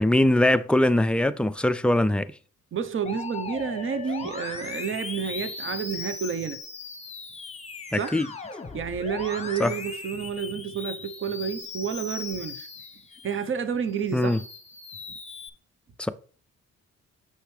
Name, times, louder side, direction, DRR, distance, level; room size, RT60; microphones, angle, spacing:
voice 1, 0.0-2.3 7.9-8.3 9.6-9.7 14.1-14.4 16.0-16.1, left 1 dB, 5° left, 0.3 m, -22 dB
voice 2, 2.7-6.6 7.9-8.2 8.7-12.7 13.2-14.4, right 6 dB, 40° right, 0.8 m, -30 dB
Musical instrument, 3.1-13.5 13.9-15.5, left 4 dB, 20° left, 0.9 m, -38 dB
6.6 x 5.7 x 3.2 m
cardioid pair, 90°, 30 cm